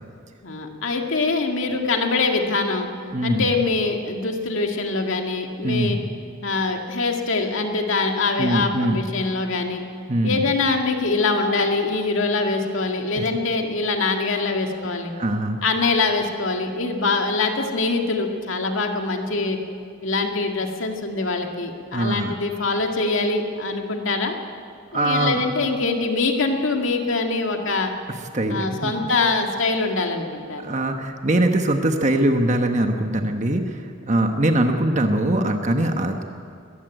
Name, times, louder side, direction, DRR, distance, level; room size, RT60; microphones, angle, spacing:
voice 1, 0.4-2.9 3.2-6.0 6.4-9.8 10.2-15.1 15.6-19.6 20.0-24.3 24.9-27.9 28.5-30.6, left 3 dB, 70° left, 3 dB, 2.0 m, -23 dB
voice 2, 3.1-3.5 5.6-6.1 8.4-9.0 10.1-10.4 13.2-13.3 15.2-15.6 21.9-22.3 24.9-25.4 28.1-28.9 30.6-36.2, right 1 dB, 35° right, 5 dB, 1.2 m, -22 dB
21.5 x 14.5 x 9.2 m, 2.4 s
head